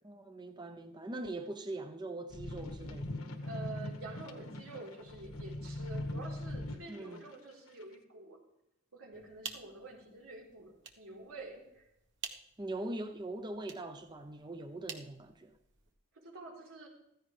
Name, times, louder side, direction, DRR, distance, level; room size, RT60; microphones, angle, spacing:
voice 1, 0.0-3.3 6.9-7.2 12.6-15.6, right 2 dB, 20° right, 0.7 m, -42 dB
sound 1, 2.3-7.2 7.8-7.9, left 1 dB, 85° left, 1.3 m, -41 dB
voice 2, 3.4-8.4 8.9-11.9 16.1-16.9, right 2 dB, 90° right, 4.1 m, -48 dB
sound 2, 9.1-16.0, right 7 dB, 55° right, 1.2 m, -50 dB
15.0 x 14.5 x 3.3 m
head